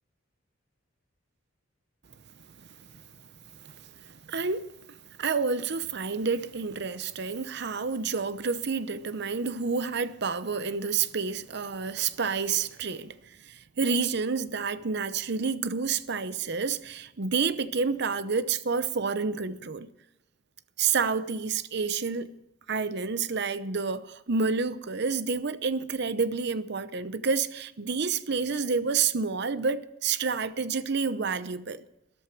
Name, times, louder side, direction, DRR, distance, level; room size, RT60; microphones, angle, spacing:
voice 1, 3.5-19.9 20.8-22.3 22.7-31.8, right 5 dB, 60° right, 0.8 m, -29 dB
13.5 x 12.5 x 6.0 m
head